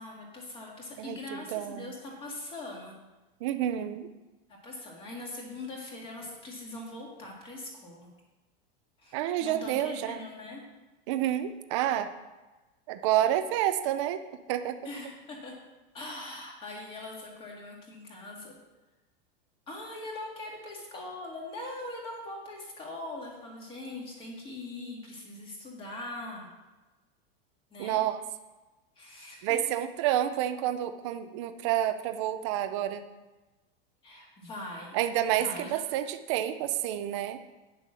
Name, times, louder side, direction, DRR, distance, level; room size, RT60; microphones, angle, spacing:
voice 1, 0.0-3.0 4.6-8.1 9.0-10.6 14.8-15.5 15.9-18.6 19.7-26.5 27.7-28.0 29.0-29.6 34.0-35.0 35.3-35.8, left 2 dB, 15° left, -1 dB, 1.8 m, -41 dB
voice 2, 1.0-1.9 3.4-4.1 9.1-10.2 11.1-12.1 12.9-14.2 14.5-14.8 27.8-28.2 29.4-33.0 34.9-37.4, right 12 dB, 30° right, 9 dB, 0.4 m, -29 dB
9.1 x 6.7 x 6.3 m, 1.1 s
supercardioid pair, 180°, 30 cm